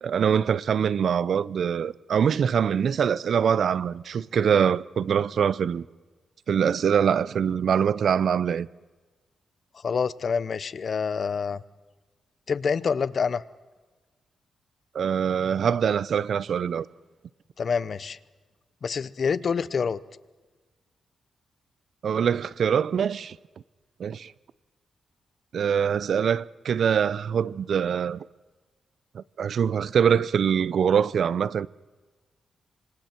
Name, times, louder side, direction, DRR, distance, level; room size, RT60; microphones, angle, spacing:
voice 1, 0.0-5.8 6.5-8.7 14.9-16.9 22.0-23.4 24.0-24.3 25.5-28.3 29.1-31.7, right 7 dB, 60° right, 0.6 m, -24 dB
voice 2, 9.8-11.6 12.5-13.4 17.6-18.2 18.8-20.0, left 6 dB, 45° left, 0.7 m, -27 dB
27.5 x 25.5 x 4.5 m
wide cardioid pair, 140°, 0 cm